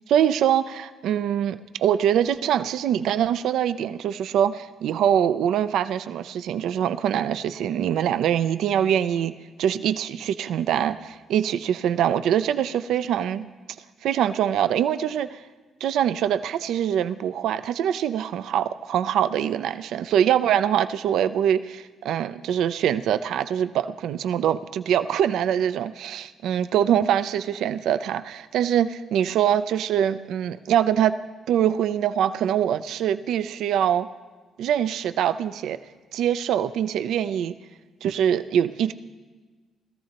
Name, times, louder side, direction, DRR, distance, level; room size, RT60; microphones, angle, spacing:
voice 1, 0.1-13.5 14.0-15.4 15.8-31.2 31.5-34.1 34.6-35.8 36.1-37.5 38.0-38.9, right 9 dB, 80° right, 12 dB, 0.4 m, -23 dB
20.5 x 14.0 x 2.9 m, 1.3 s
cardioid pair, 90°, 0 cm